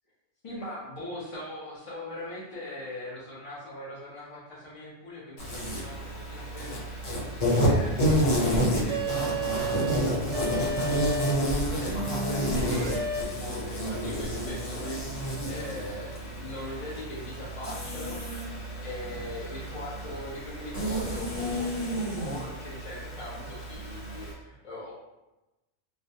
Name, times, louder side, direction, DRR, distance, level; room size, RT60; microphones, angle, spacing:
voice 1, 0.4-7.1 7.6-10.9 11.3-13.0 13.3-15.0 15.4-18.6 18.8-24.9, left 1 dB, 40° left, -8 dB, 0.5 m, -40 dB
Insect, 5.4-24.3, equal, 85° left, 1.2 m, -30 dB
sound 1, 8.9-10.0 10.3-11.3 11.9-13.2, right 2 dB, 75° right, 0.9 m, -31 dB
2.3 x 2.1 x 2.6 m, 1.0 s
omnidirectional pair, 1.3 m